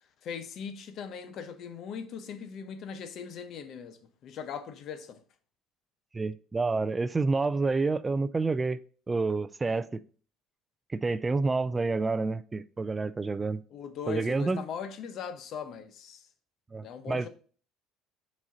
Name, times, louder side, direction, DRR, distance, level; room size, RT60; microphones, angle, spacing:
voice 1, 0.2-5.2 13.7-16.2 16.8-17.3, left 7 dB, 55° left, 0.8 m, -39 dB
voice 2, 6.1-8.8 9.1-10.0 10.9-13.6 14.1-14.6 16.7-17.3, right 3 dB, 20° right, 0.3 m, -28 dB
6.0 x 4.3 x 3.9 m
supercardioid pair, 95°, 0 cm